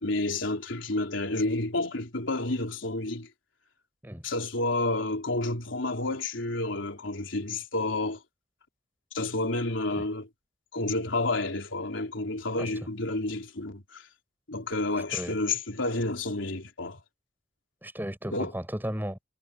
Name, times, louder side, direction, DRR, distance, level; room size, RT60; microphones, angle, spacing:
voice 1, 0.0-3.3 4.2-8.2 9.1-10.3 10.7-14.1 14.5-17.0 18.3-18.5, left 2 dB, 80° left, 3.6 m, -30 dB
voice 2, 15.0-15.4 17.8-19.2, equal, 10° right, 7.7 m, -35 dB
head